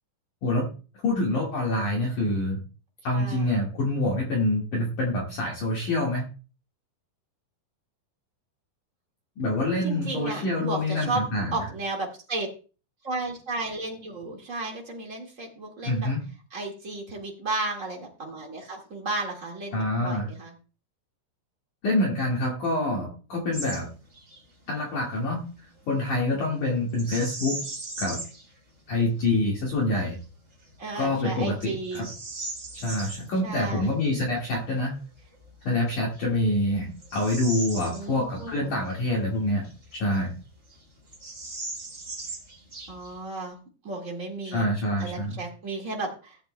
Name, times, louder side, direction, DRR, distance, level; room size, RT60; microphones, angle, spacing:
voice 1, 1.0-2.6 3.0-6.2 9.4-11.5 15.8-16.2 19.7-20.3 21.8-23.9 24.7-25.5 25.9-27.6 28.0-28.2 28.9-30.2 31.0-32.1 32.7-34.9 35.6-39.7 39.9-40.3 44.5-45.4, left 1 dB, 55° left, -2 dB, 3.0 m, -26 dB
voice 2, 3.1-3.6 9.8-11.2 11.5-12.5 13.0-16.1 16.5-20.5 30.8-32.0 33.4-33.9 37.9-38.7 42.9-43.6 43.8-44.7 45.0-46.4, right 2 dB, 75° right, -1 dB, 0.7 m, -33 dB
Bird vocalization bird call bird song, 23.5-23.8 24.1-24.4 26.9-28.4 29.0-29.1 29.7-30.1 30.7-30.8 31.3-33.2 35.3-35.4 36.1-38.5 38.9-39.0 39.6-40.4 40.7-40.8 41.1-43.2, right 2 dB, 20° right, 3.6 m, -38 dB
18.0 x 8.7 x 2.2 m, 0.36 s
omnidirectional pair, 5.1 m